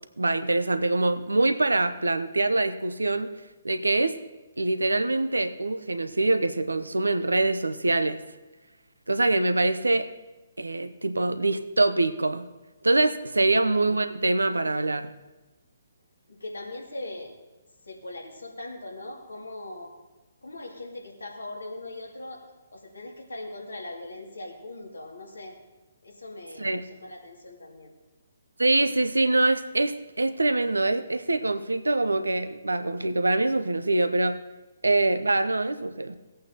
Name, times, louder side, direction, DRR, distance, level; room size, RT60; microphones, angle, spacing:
voice 1, 0.2-3.3 3.6-4.1 4.6-8.2 9.1-10.1 10.6-12.5 12.8-15.1 26.6-26.8 28.6-34.4 34.8-36.1, right 2 dB, 85° right, 10 dB, 0.7 m, -24 dB
voice 2, 16.3-17.4 17.8-19.9 20.4-22.4 22.7-25.6 26.0-27.9, left 2 dB, 80° left, -1 dB, 2.6 m, -40 dB
17.5 x 8.6 x 2.9 m, 1.1 s
figure-of-eight pair, 135°, 0 cm